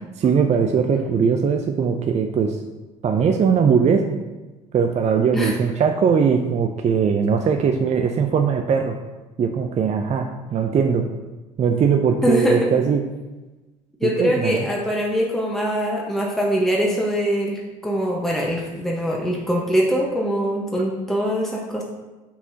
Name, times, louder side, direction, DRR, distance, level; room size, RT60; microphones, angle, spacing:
voice 1, 0.2-2.6 3.0-4.2 4.7-9.0 9.4-11.1 11.6-13.0 14.0-14.7, right 6 dB, 40° right, 5 dB, 0.6 m, -20 dB
voice 2, 12.2-12.6 14.0-21.8, equal, ahead, -3 dB, 1.3 m, -22 dB
6.0 x 5.7 x 2.9 m, 1.1 s
hypercardioid pair, 60°, 18 cm